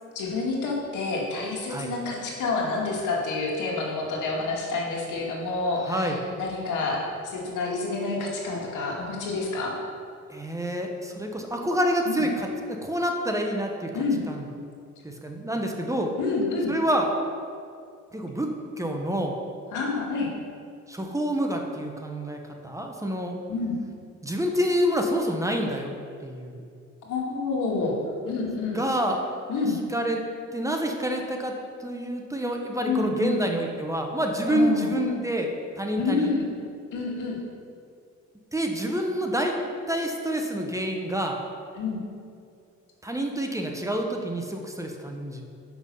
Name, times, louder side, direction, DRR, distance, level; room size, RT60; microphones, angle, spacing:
voice 1, 0.1-9.7 12.1-12.2 13.9-14.2 16.2-16.7 19.7-20.3 23.5-23.8 27.0-27.9 28.3-28.8 29.5-29.8 32.9-33.4 34.5-34.9 36.0-36.5 36.9-37.4 41.8-42.0, left 3 dB, 85° left, -2 dB, 2.0 m, -28 dB
voice 2, 5.8-6.2 10.3-13.9 14.3-14.5 15.0-16.1 16.7-17.1 18.1-19.3 20.9-23.4 24.2-25.9 26.2-26.6 28.7-29.2 29.6-30.2 30.5-31.5 31.8-35.5 35.8-36.3 38.5-39.5 39.9-41.4 43.0-45.4, equal, 10° right, 2 dB, 0.9 m, -27 dB
7.3 x 6.0 x 5.4 m, 2.4 s
cardioid pair, 90°, 30 cm